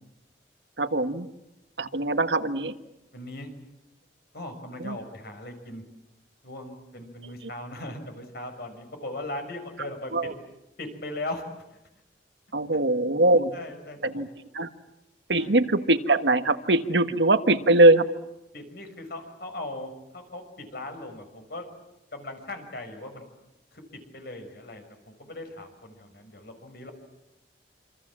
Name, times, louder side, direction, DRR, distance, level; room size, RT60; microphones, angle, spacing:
voice 1, 0.8-1.3 1.8-2.8 4.8-5.0 10.1-10.3 12.5-13.5 14.0-14.3 14.5-14.7 15.3-18.1, right 2 dB, 85° right, 9 dB, 1.5 m, -21 dB
voice 2, 3.1-3.5 4.3-5.8 6.4-10.3 10.8-11.4 13.5-14.2 15.3-15.6 18.5-21.7 22.1-23.2 23.7-23.8 24.1-26.9, left 1 dB, 60° left, 6 dB, 5.9 m, -39 dB
27.5 x 27.0 x 7.5 m, 0.91 s
head